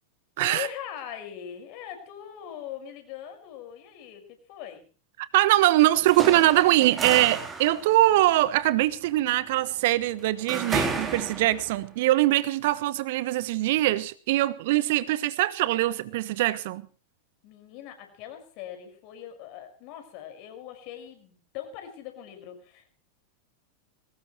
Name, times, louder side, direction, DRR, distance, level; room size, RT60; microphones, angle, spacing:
voice 1, 0.4-4.8 17.4-22.9, left 10 dB, 45° left, 5.9 m, -41 dB
voice 2, 5.2-16.8, right 16 dB, 50° right, 1.2 m, -22 dB
sound 1, 5.9-11.8, right 4 dB, 15° right, 3.8 m, -33 dB
22.0 x 19.0 x 3.2 m
figure-of-eight pair, 90°, 0 cm